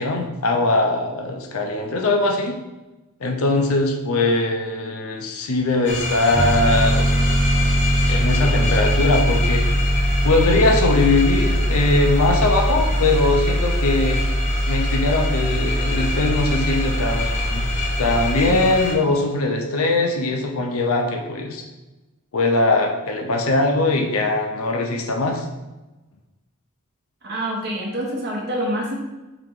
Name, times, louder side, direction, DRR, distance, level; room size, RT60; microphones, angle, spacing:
voice 1, 0.0-2.5 3.2-7.2 8.0-9.7 10.2-14.2 14.7-17.7 18.0-21.6 22.3-25.5, left 2 dB, 70° left, 2 dB, 0.6 m, -21 dB
sound 1, 5.8-18.9, left 2 dB, 30° left, 0.8 m, -28 dB
Piano, 6.3-18.6, equal, 15° right, 0.5 m, -21 dB
voice 2, 27.2-29.0, right 1 dB, 50° right, -2 dB, 0.8 m, -26 dB
4.8 x 2.9 x 3.7 m, 1.1 s
head